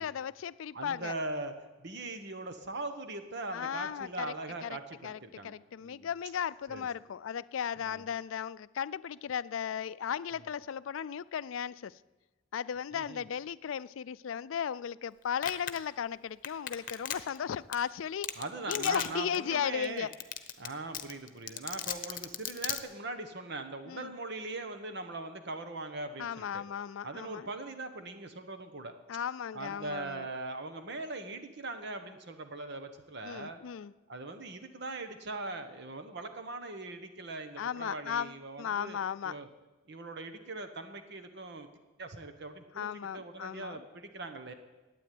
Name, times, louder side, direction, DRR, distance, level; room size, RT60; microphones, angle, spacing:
voice 1, 0.0-1.1 3.5-4.3 4.6-4.8 5.0-11.9 12.5-18.3 18.7-20.1 23.9-24.1 26.2-27.5 29.1-30.3 33.2-33.9 37.6-39.4 42.8-43.8, left 8 dB, 80° left, 0.4 m, -36 dB
voice 2, 0.7-1.5 1.8-5.6 5.8-6.1 6.7-6.9 7.8-8.0 10.4-10.5 12.9-13.3 18.4-20.1 20.6-26.6 27.0-28.9 29.5-33.6 34.1-39.0 39.2-39.5 39.9-41.7 42.0-44.5, right 2 dB, 60° right, 1.1 m, -41 dB
Domestic sounds home sounds, 15.4-15.8 16.4-17.4 17.7-17.8 18.2-18.4 18.7-19.1 19.3-19.4 19.8-19.9 20.1-20.7 20.9-22.8, left 10 dB, 45° left, 0.9 m, -34 dB
12.0 x 9.1 x 9.4 m
head